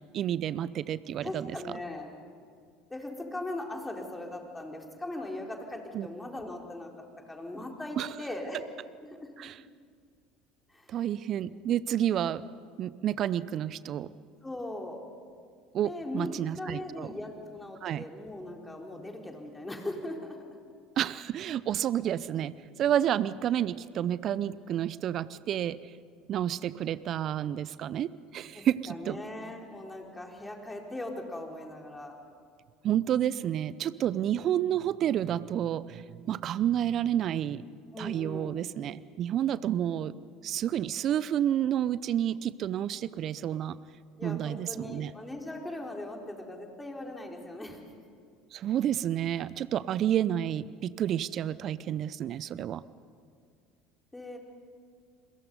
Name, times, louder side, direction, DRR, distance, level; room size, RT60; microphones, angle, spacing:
voice 1, 0.1-1.5 5.9-6.1 8.0-8.1 9.4-9.6 10.9-12.4 12.8-14.1 15.7-17.1 17.8-18.0 21.0-22.5 22.8-25.8 26.3-29.2 32.8-37.6 38.0-40.1 40.4-43.8 44.2-45.1 48.5-52.8, right 10 dB, 50° right, 18 dB, 0.7 m, -30 dB
voice 2, 1.2-2.1 2.9-8.6 9.0-9.3 10.7-11.0 14.4-15.0 15.8-20.5 28.5-32.2 37.9-38.6 44.2-47.8 54.1-54.4, left 1 dB, 10° left, 1 dB, 4.0 m, -39 dB
30.0 x 22.0 x 5.4 m, 2.1 s
hypercardioid pair, 65°, 0 cm